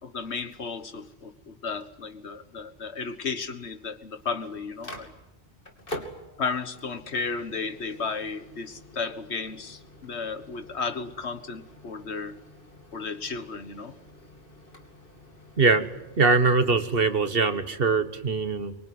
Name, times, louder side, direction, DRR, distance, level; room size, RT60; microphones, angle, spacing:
voice 1, 0.0-5.1 5.9-6.0 6.4-12.4 12.9-13.9, left 4 dB, 85° left, 10 dB, 1.7 m, -34 dB
Microwave oven, 4.0-17.6, equal, 55° left, 3.1 m, -47 dB
voice 2, 15.6-15.9 16.2-18.8, right 4 dB, 60° right, 10 dB, 1.7 m, -22 dB
24.0 x 23.0 x 9.5 m, 0.92 s
omnidirectional pair, 1.1 m